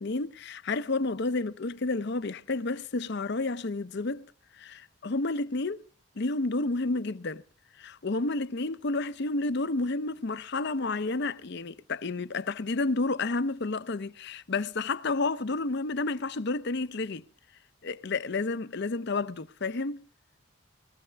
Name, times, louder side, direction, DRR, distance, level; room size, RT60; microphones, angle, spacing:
voice 1, 0.0-5.8 6.2-7.4 7.8-17.2 17.8-20.1, left 3 dB, 55° left, 0.7 m, -30 dB
21.0 x 14.5 x 3.4 m
head